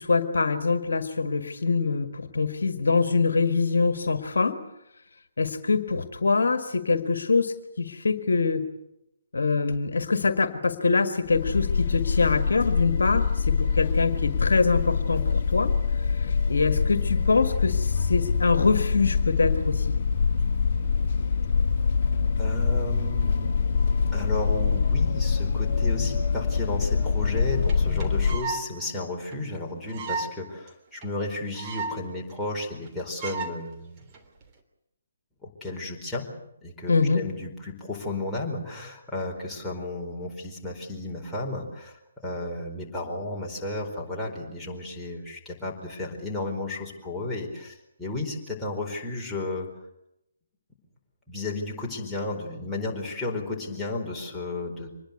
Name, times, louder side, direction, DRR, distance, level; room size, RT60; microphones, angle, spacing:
voice 1, 0.0-4.6 5.4-8.6 9.3-15.7 16.2-19.9 36.9-37.2, left 4 dB, 60° left, 9 dB, 1.8 m, -24 dB
sound 1, 11.3-28.4, left 5 dB, 40° left, 1.7 m, -24 dB
voice 2, 22.4-23.6 24.1-34.0 35.4-36.3 36.6-49.7 51.3-54.9, left 2 dB, 5° left, -4 dB, 4.6 m, -33 dB
sound 2, 27.4-27.5 27.7-27.8 28.0-28.6 29.0-29.1 29.3-29.4 29.9-30.3 30.7-30.8 31.0-31.1 31.3-32.0 32.3-32.4 32.6-32.9 33.2-33.5 34.1-34.4, right 4 dB, 25° right, 3.2 m, -33 dB
25.0 x 20.5 x 8.2 m, 0.84 s
figure-of-eight pair, 140°, 0 cm